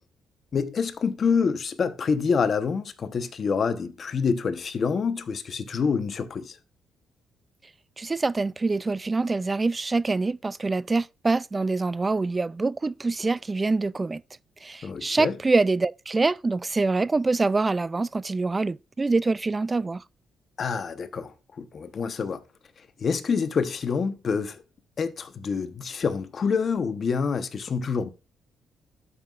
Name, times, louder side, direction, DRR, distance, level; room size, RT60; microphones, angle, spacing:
voice 1, 0.5-6.6 14.8-15.4 20.6-21.3 21.6-22.4 23.0-24.6 25.0-28.1, left 5 dB, 45° left, 1.0 m, -27 dB
voice 2, 8.0-14.2 14.6-20.0, right 3 dB, 25° right, 0.3 m, -25 dB
12.5 x 5.6 x 2.5 m
cardioid pair, 90°, 0 cm